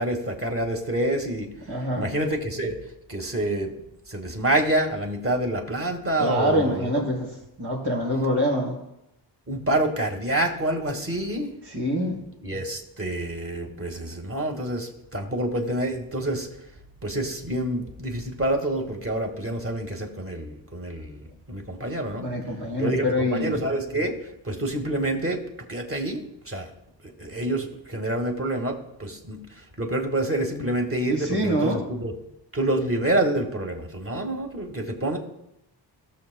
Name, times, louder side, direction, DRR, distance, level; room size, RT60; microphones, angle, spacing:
voice 1, 0.0-1.5 2.0-2.8 3.1-3.7 4.1-7.1 9.5-11.5 12.4-16.5 17.0-22.3 22.8-24.2 24.4-25.4 25.7-26.7 27.2-29.4 29.8-32.1 32.5-35.2, right 1 dB, 30° right, 2 dB, 1.8 m, -27 dB
voice 2, 1.7-2.1 6.2-7.3 7.6-8.8 11.6-12.2 22.2-23.6 31.1-31.8, equal, 85° right, -4 dB, 4.0 m, -25 dB
17.5 x 6.8 x 2.2 m, 0.84 s
cardioid pair, 50°, 47 cm